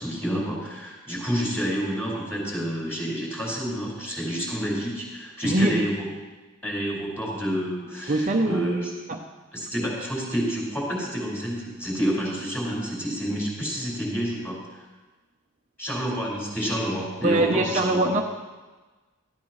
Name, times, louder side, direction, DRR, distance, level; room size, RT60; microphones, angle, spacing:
voice 1, 0.0-6.1 6.6-8.9 9.5-14.9 15.8-18.1, equal, 10° left, -5 dB, 5.4 m, -29 dB
voice 2, 5.4-5.8 8.1-8.7 9.1-9.2 17.2-18.2, right 1 dB, 35° right, 1 dB, 0.8 m, -22 dB
18.5 x 14.5 x 3.2 m, 1.2 s
head